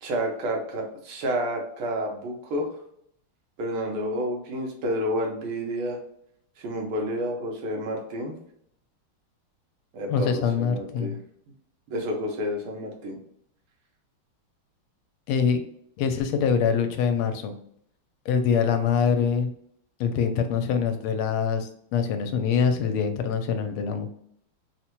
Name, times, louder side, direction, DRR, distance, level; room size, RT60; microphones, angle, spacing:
voice 1, 0.0-2.7 3.6-6.0 6.6-8.3 9.9-11.2 11.9-13.2, equal, 90° right, 1 dB, 1.8 m, -30 dB
voice 2, 10.1-11.2 15.3-15.6 16.0-17.5 18.3-19.5 20.0-24.1, left 6 dB, 85° left, 7 dB, 1.4 m, -24 dB
4.1 x 2.1 x 2.9 m, 0.69 s
omnidirectional pair, 2.3 m